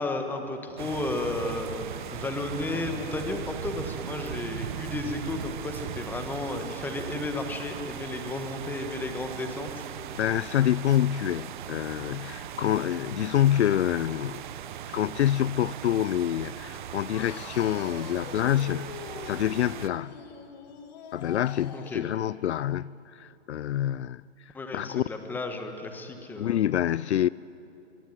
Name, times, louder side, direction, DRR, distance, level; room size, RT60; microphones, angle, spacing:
voice 1, 0.0-1.8 2.1-9.8 21.7-22.0 24.5-26.6, left 2 dB, 5° left, 1.4 m, -33 dB
sound 1, 0.8-19.9, right 9 dB, 45° right, 1.2 m, -39 dB
voice 2, 10.1-14.4 14.9-20.1 21.1-24.2 24.7-25.0 26.4-27.3, left 11 dB, 70° left, 0.5 m, -27 dB
sound 2, 17.1-22.0, left 7 dB, 35° left, 2.1 m, -43 dB
23.0 x 22.5 x 9.2 m
hypercardioid pair, 150°, 35 cm